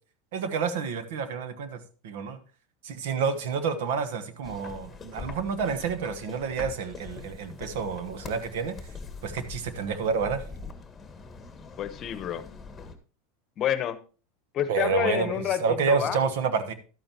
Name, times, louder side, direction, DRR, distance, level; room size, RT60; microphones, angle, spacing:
voice 1, 0.3-2.4 2.8-8.8 9.2-10.4 14.7-16.7, right 5 dB, 75° right, 11 dB, 1.2 m, -29 dB
sound 1, 4.4-12.9, left 4 dB, 15° left, 1.5 m, -43 dB
voice 2, 11.8-12.4 13.6-14.0 14.5-16.2, left 10 dB, 40° left, 12 dB, 1.0 m, -29 dB
12.0 x 8.9 x 2.9 m, 0.36 s
supercardioid pair, 115°, 0 cm